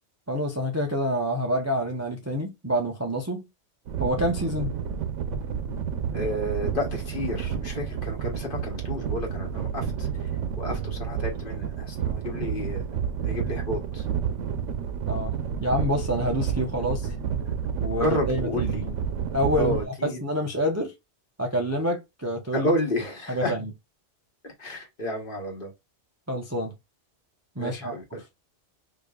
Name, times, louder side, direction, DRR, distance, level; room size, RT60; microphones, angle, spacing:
voice 1, 0.3-3.5 4.0-4.7 15.1-15.3 15.6-17.1 17.8-18.9 19.3-20.9 21.4-22.7 23.3-23.7 26.3-26.7 27.6-28.2, equal, 20° right, 0.4 m, -27 dB
sound 1, 3.9-19.8, right 7 dB, 85° right, 1.0 m, -30 dB
voice 2, 6.1-10.3 10.6-14.1 18.0-18.8 19.5-20.2 22.5-23.6 24.4-25.7 27.6-28.2, left 1 dB, 50° left, 1.3 m, -31 dB
4.8 x 2.6 x 2.3 m
omnidirectional pair, 1.2 m